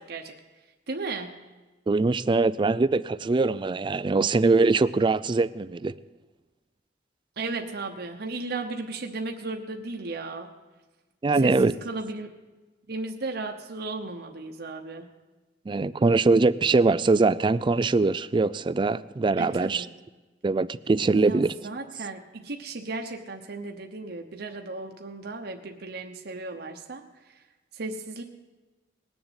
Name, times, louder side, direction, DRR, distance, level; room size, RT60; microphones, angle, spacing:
voice 1, 0.9-1.3 7.4-10.5 11.3-12.3 12.9-15.1 19.4-19.9 21.1-27.3 27.7-28.2, right 3 dB, 60° right, 3 dB, 1.0 m, -35 dB
voice 2, 1.9-5.9 11.2-11.7 15.7-19.8 20.4-21.5, right 3 dB, 25° right, 16 dB, 0.4 m, -22 dB
20.0 x 7.1 x 8.0 m, 1.2 s
head